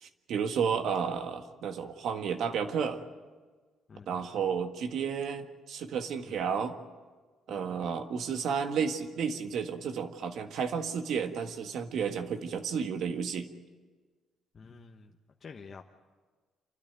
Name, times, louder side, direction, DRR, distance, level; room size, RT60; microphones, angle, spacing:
voice 1, 0.0-3.0 4.1-6.7 7.5-13.5, right 6 dB, 70° right, 7 dB, 1.6 m, -32 dB
voice 2, 3.9-4.3 6.3-6.5 7.5-7.9 14.5-15.1 15.4-15.8, left 5 dB, 35° left, 2 dB, 1.1 m, -49 dB
28.0 x 12.5 x 9.1 m, 1.4 s
cardioid pair, 115°, 0 cm